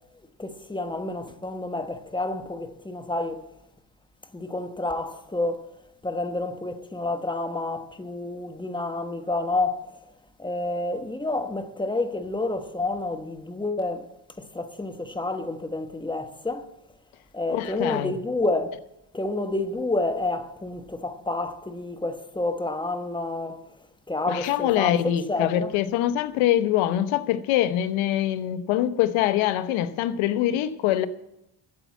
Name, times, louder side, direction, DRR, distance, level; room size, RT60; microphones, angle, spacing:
voice 1, 0.4-3.4 4.3-5.7 6.0-9.8 10.4-14.1 14.4-16.7 17.3-18.8 19.1-23.6 24.1-25.7, left 2 dB, 10° left, 1.2 m, -29 dB
voice 2, 17.5-18.1 24.3-31.1, left 12 dB, 85° left, 1.0 m, -24 dB
11.5 x 8.2 x 8.2 m
cardioid pair, 105°, 47 cm